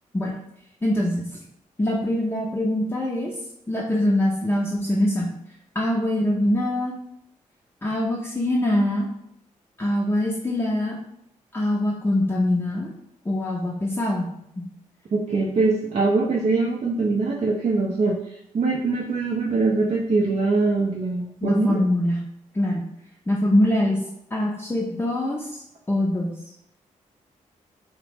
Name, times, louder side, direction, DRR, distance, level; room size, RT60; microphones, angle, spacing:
voice 1, 0.8-1.4 1.8-3.3 3.7-5.3 5.7-6.9 7.8-9.1 9.8-11.0 11.5-12.9 13.3-14.3 14.6-14.7 21.4-22.2 22.5-22.8 23.3-24.0 24.3-25.6 25.9-26.3, left 1 dB, 15° left, -3 dB, 0.5 m, -23 dB
voice 2, 15.1-21.8, right 3 dB, 45° right, -1 dB, 0.4 m, -23 dB
2.8 x 2.0 x 3.3 m, 0.77 s
supercardioid pair, 50°, 14 cm